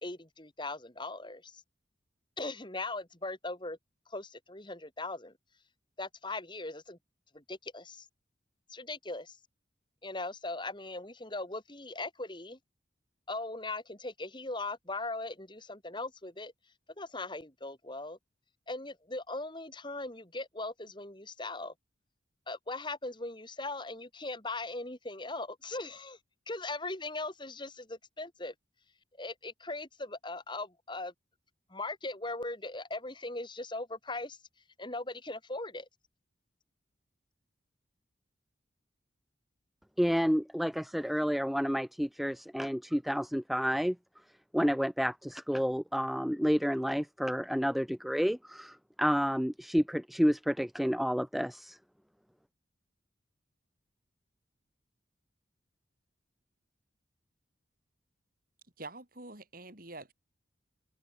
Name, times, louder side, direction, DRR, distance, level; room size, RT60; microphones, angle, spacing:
voice 1, 0.0-1.6 2.4-3.8 4.1-5.3 6.0-7.0 7.3-8.1 8.7-9.4 10.0-12.6 13.3-16.5 17.0-18.2 18.7-21.7 22.5-26.2 26.5-28.5 29.2-31.1 31.7-34.4 34.8-35.9, left 2 dB, 25° left, 4.1 m, -39 dB
voice 2, 40.0-44.0 44.5-51.8, equal, ahead, 0.5 m, -30 dB
voice 3, 58.8-60.1, right 2 dB, 50° right, 5.7 m, -46 dB
open air
head